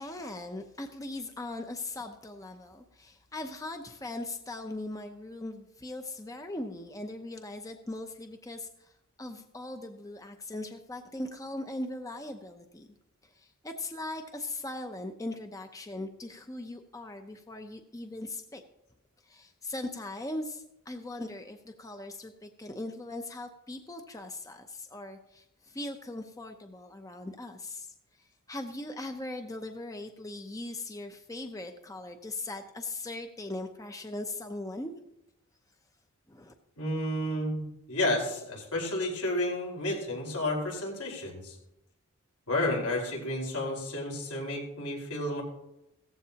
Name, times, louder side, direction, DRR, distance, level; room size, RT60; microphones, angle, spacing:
voice 1, 0.0-8.9 9.2-12.9 13.2-18.6 19.2-34.9 36.3-36.5, left 2 dB, 15° left, 6 dB, 0.6 m, -40 dB
voice 2, 36.8-37.6 37.9-41.6 42.5-45.4, left 1 dB, 80° left, -1 dB, 4.6 m, -31 dB
16.5 x 14.5 x 2.9 m, 0.85 s
head